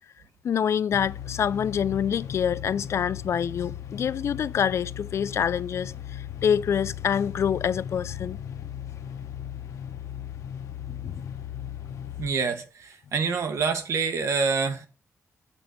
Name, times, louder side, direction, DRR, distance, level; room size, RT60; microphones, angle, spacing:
voice 1, 0.4-8.4 10.9-11.2, left 8 dB, 60° left, 0.4 m, -26 dB
sound 1, 0.9-12.3, left 10 dB, 85° left, 0.8 m, -37 dB
voice 2, 12.2-14.9, right 5 dB, 70° right, 1.4 m, -26 dB
7.6 x 6.1 x 4.5 m
wide cardioid pair, 135°, 5 cm